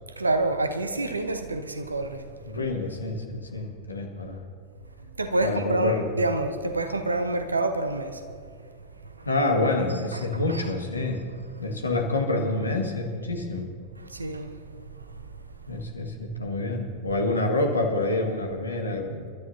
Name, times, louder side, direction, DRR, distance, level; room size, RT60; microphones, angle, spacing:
voice 1, 0.2-2.2 5.2-8.2 10.5-10.7 14.0-14.5, right 2 dB, 80° right, 1.0 m, -27 dB
voice 2, 2.5-4.4 5.4-6.1 9.3-11.3 11.6-13.7 15.7-19.3, left 2 dB, 80° left, 1.8 m, -27 dB
29.0 x 12.5 x 2.8 m
figure-of-eight pair, 90°, 0 cm